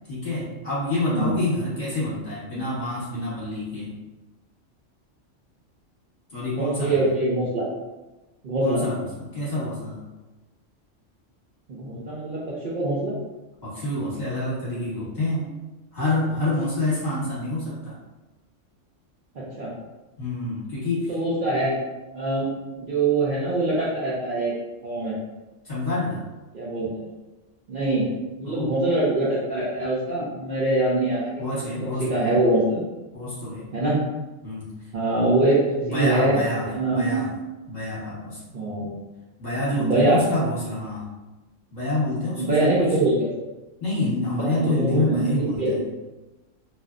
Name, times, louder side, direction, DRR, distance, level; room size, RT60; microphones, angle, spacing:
voice 1, 0.1-4.0 6.3-7.1 8.6-10.0 13.6-15.5 15.9-18.0 20.2-21.2 25.6-26.2 28.4-28.7 31.4-32.4 33.1-33.7 34.4-34.7 35.8-37.3 37.7-38.4 39.4-41.1 41.7-42.7 43.8-45.8, left 2 dB, 35° left, -10 dB, 1.1 m, -27 dB
voice 2, 6.6-7.7 8.4-8.8 11.7-13.1 19.4-19.7 21.1-21.8 22.1-22.5 22.8-24.5 24.8-25.2 26.5-27.1 27.7-28.1 28.4-31.3 32.0-32.8 33.7-34.0 34.9-36.4 36.6-37.3 38.5-38.9 39.8-40.2 42.4-43.3 44.5-45.8, right 2 dB, 60° right, -8 dB, 0.6 m, -23 dB
2.9 x 2.0 x 2.4 m, 1.1 s
omnidirectional pair, 1.3 m